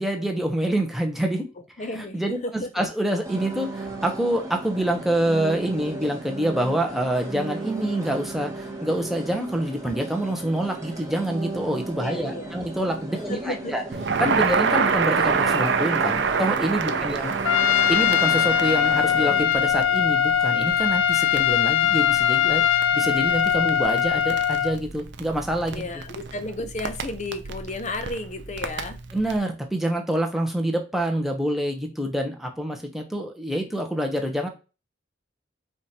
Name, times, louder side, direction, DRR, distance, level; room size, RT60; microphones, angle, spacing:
voice 1, 0.0-1.4 2.0-13.8 14.2-17.3 17.9-22.6 22.9-25.8 29.1-34.5, right 1 dB, ahead, 2 dB, 0.8 m, -26 dB
voice 2, 1.8-2.2 2.4-2.7 12.0-12.6 13.3-13.7 16.9-17.1 25.7-29.0, left 2 dB, 40° left, 8 dB, 0.7 m, -33 dB
sound 1, 3.2-19.4, right 2 dB, 15° right, 1.1 m, -36 dB
Crackle, 13.9-29.4, right 5 dB, 65° right, 0.5 m, -28 dB
Trumpet, 17.4-24.8, left 9 dB, 85° left, 0.3 m, -21 dB
5.0 x 2.5 x 4.2 m, 0.30 s
head